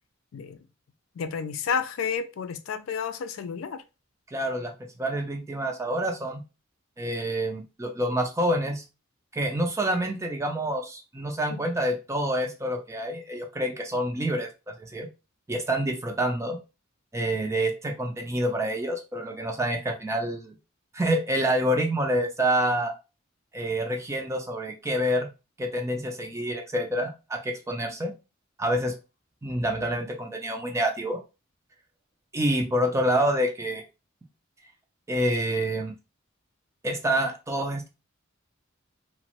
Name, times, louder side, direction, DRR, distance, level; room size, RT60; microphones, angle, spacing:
voice 1, 1.2-3.8 11.5-11.6, left 6 dB, 75° left, 0.3 m, -31 dB
voice 2, 4.3-4.7 5.0-6.4 7.0-8.8 9.3-15.1 15.5-16.6 17.1-20.5 20.9-22.9 23.5-25.3 25.6-28.1 28.6-28.9 29.4-31.2 32.3-33.8 35.1-35.9 36.8-37.9, right 1 dB, 15° right, 0.4 m, -27 dB
2.9 x 2.1 x 2.9 m
head